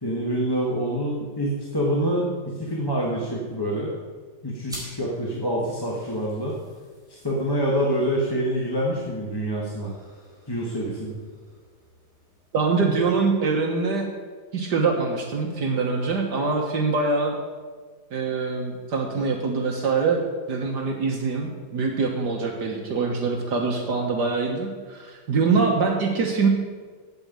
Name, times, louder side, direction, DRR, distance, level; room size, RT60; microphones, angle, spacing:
voice 1, 0.0-3.9 4.4-6.6 7.1-9.9 10.5-11.2, equal, 15° left, -4 dB, 1.4 m, -26 dB
sound 1, 4.6-13.6, equal, ahead, 4.4 m, -49 dB
voice 2, 12.5-14.1 14.5-17.4 18.1-20.2 20.5-26.5, right 4 dB, 60° right, 1 dB, 1.8 m, -24 dB
8.8 x 8.2 x 8.8 m, 1.5 s
omnidirectional pair, 2.1 m